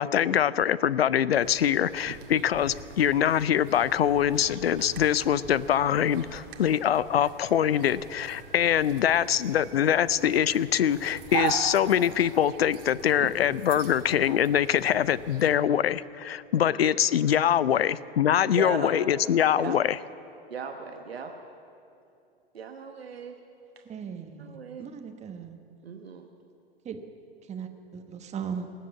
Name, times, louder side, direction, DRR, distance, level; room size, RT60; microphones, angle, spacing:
voice 1, 0.0-20.0, left 9 dB, 85° left, 19 dB, 0.5 m, -24 dB
sound 1, 1.3-15.6, right 8 dB, 65° right, 1.8 m, -41 dB
voice 2, 18.6-19.0 19.6-19.7 20.5-21.3 22.5-23.3 24.4-24.9 25.8-26.3, right 5 dB, 85° right, 4 dB, 1.1 m, -37 dB
voice 3, 23.8-25.6 26.8-27.0 27.5-28.7, right 7 dB, 20° right, 6 dB, 1.1 m, -38 dB
19.0 x 7.7 x 8.4 m, 2.6 s
hypercardioid pair, 95°, 30 cm